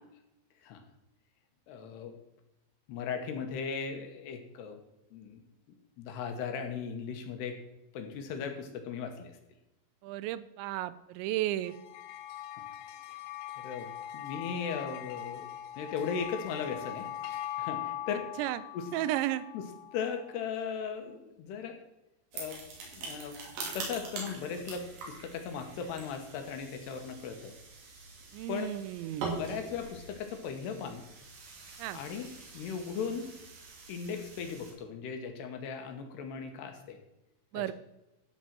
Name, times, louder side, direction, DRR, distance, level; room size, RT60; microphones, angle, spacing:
voice 1, 1.7-2.2 2.9-4.8 5.1-5.4 5.7-7.6 7.9-9.4 12.6-12.7 13.1-13.2 13.6-15.5 15.8-18.3 18.7-18.9 19.5-21.8 22.3-23.4 23.7-27.6 28.5-28.7 29.3-31.0 31.9-33.4 33.9-37.0 37.5-37.7, left 6 dB, 75° left, 6 dB, 3.2 m, -38 dB
voice 2, 10.0-11.8 18.4-18.6 18.9-19.5 28.3-29.3 31.8-32.0 37.5-37.7, right 14 dB, 90° right, 15 dB, 2.9 m, -33 dB
sound 1, 11.7-20.3, left 12 dB, 90° left, 2.9 m, -41 dB
sound 2, 22.3-34.7, right 4 dB, 70° right, 4.8 m, -44 dB
13.0 x 5.4 x 7.5 m, 0.92 s
omnidirectional pair, 5.1 m